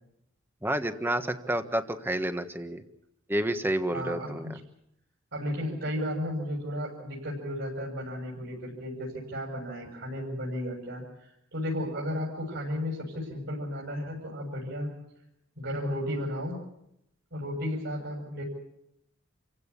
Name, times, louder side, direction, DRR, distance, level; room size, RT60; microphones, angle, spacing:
voice 1, 0.6-2.8 3.3-4.5, right 1 dB, 10° right, 8 dB, 1.5 m, -29 dB
voice 2, 3.9-4.6 5.3-14.9 15.6-16.6 17.3-18.4, equal, 60° right, -3 dB, 7.4 m, -34 dB
29.0 x 16.5 x 8.5 m, 0.79 s
head